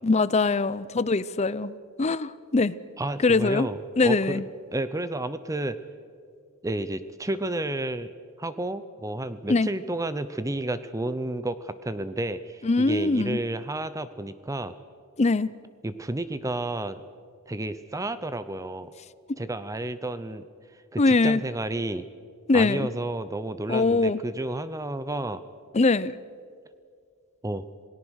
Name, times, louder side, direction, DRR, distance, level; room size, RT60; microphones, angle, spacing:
voice 1, 0.0-2.7 3.2-3.7 4.0-4.4 9.5-9.7 12.6-13.4 15.2-15.5 21.0-21.4 22.5-22.9 23.7-24.2 25.7-26.1, left 3 dB, 30° left, 18 dB, 0.5 m, -22 dB
voice 2, 3.0-4.4 4.7-5.8 6.6-8.1 8.4-14.7 15.8-17.0 17.5-18.9 19.4-20.4 20.9-22.1 22.5-25.4 27.4-27.6, right 1 dB, 15° right, 13 dB, 0.6 m, -31 dB
27.0 x 18.0 x 6.4 m, 2.2 s
head